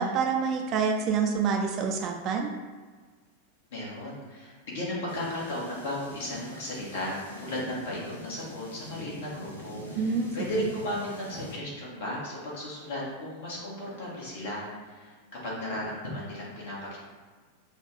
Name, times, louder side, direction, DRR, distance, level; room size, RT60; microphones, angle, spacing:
voice 1, 0.0-2.5 9.9-10.3, right 5 dB, 35° right, 3 dB, 0.4 m, -27 dB
voice 2, 3.7-15.2 15.4-17.0, left 1 dB, 55° left, -5 dB, 1.5 m, -35 dB
sound 1, 5.1-11.6, left 1 dB, 80° left, 0.8 m, -44 dB
5.0 x 2.4 x 3.3 m, 1.5 s
figure-of-eight pair, 90°, 0 cm